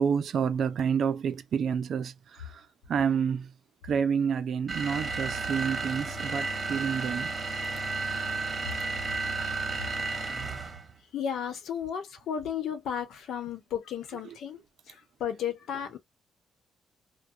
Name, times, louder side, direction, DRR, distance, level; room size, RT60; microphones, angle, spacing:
voice 1, 0.0-3.5 3.8-7.3 8.1-8.2 14.1-14.4, right 7 dB, 60° right, 0.4 m, -29 dB
sound 1, 4.7-10.9, right 3 dB, 30° right, 1.1 m, -32 dB
voice 2, 11.1-14.6 14.9-16.0, left 8 dB, 75° left, 0.9 m, -34 dB
2.4 x 2.2 x 2.7 m
cardioid pair, 90°, 0 cm